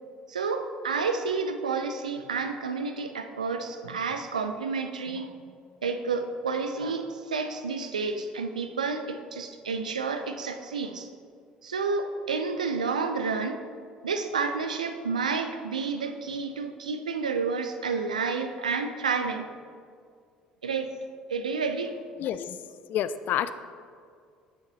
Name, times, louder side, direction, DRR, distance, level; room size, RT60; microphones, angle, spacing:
voice 1, 0.3-5.5 5.8-11.1 11.6-13.6 14.0-19.5 20.6-20.9 21.3-22.0, right 4 dB, 85° right, 8 dB, 0.4 m, -30 dB
voice 2, 22.2-22.6 22.9-23.5, left 10 dB, 50° left, 13 dB, 0.3 m, -28 dB
9.0 x 6.3 x 3.1 m, 2.1 s
figure-of-eight pair, 55°, 4 cm